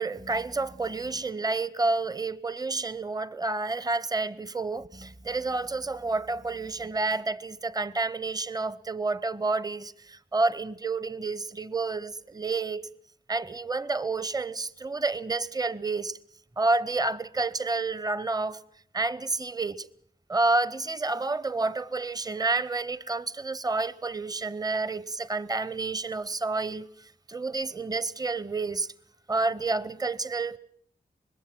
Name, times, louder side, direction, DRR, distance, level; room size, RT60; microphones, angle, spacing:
voice 1, 0.0-12.9 13.3-16.2 16.6-18.6 18.9-19.9 20.3-28.9 29.3-30.6, right 3 dB, 20° right, 0.8 m, -29 dB
25.0 x 21.0 x 6.1 m
wide cardioid pair, 75°, 17 cm